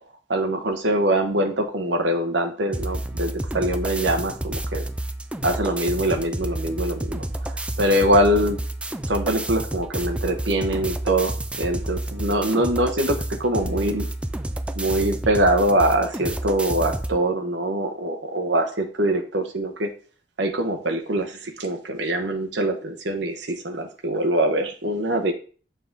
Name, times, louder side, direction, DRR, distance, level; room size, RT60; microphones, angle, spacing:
voice 1, 0.3-4.8 5.4-8.6 9.1-11.3 11.6-14.1 14.8-19.9 20.4-25.3, right 1 dB, 75° right, 5 dB, 1.0 m, -23 dB
sound 1, 2.7-17.2, right 1 dB, 5° right, 0.3 m, -30 dB
6.7 x 3.6 x 3.9 m, 0.39 s
head